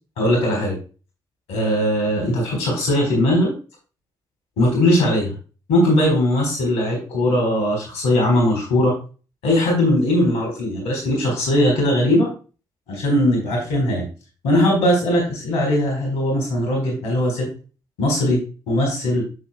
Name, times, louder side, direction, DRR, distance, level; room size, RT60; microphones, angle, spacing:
voice 1, 0.2-0.8 1.5-3.5 4.6-5.3 5.7-8.9 9.4-12.3 12.9-14.1 14.4-17.5 18.0-18.4 18.7-19.2, left 1 dB, 80° left, -1 dB, 4.2 m, -19 dB
9.4 x 7.5 x 2.2 m, 0.35 s
hypercardioid pair, 45°, 11 cm